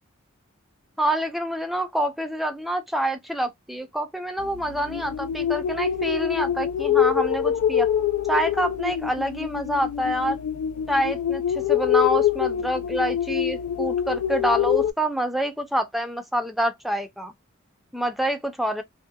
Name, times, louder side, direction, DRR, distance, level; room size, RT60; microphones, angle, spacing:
voice 1, 1.0-7.9 8.3-10.4 10.9-17.3 17.9-18.8, right 1 dB, ahead, 0.4 m, -27 dB
sound 1, 4.4-14.9, left 9 dB, 80° left, 0.3 m, -25 dB
2.7 x 2.2 x 2.2 m
head